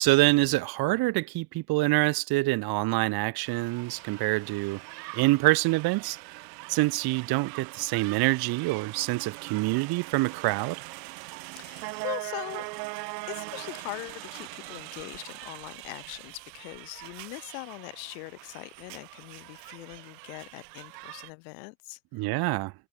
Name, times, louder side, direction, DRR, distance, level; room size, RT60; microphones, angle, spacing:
voice 1, 0.0-4.8 5.1-6.2 6.7-10.9 22.1-22.7, right 21 dB, 50° right, 1.8 m, -26 dB
sound 1, 3.5-21.3, right 25 dB, 80° right, 2.7 m, -42 dB
voice 2, 11.5-12.7 13.3-22.3, left 34 dB, 70° left, 6.6 m, -41 dB
cardioid pair, 150°, 49 cm